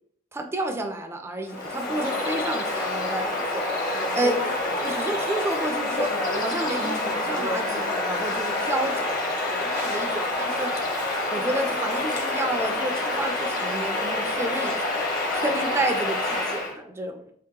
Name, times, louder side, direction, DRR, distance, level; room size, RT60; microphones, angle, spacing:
voice 1, 0.3-3.7 4.1-4.4 4.8-10.7 11.3-15.0 15.3-17.3, right 1 dB, 15° right, 4 dB, 0.3 m, -31 dB
Bird vocalization bird call bird song, 1.5-16.7, left 2 dB, 45° left, 0.8 m, -27 dB
3.0 x 2.8 x 3.6 m, 0.64 s
head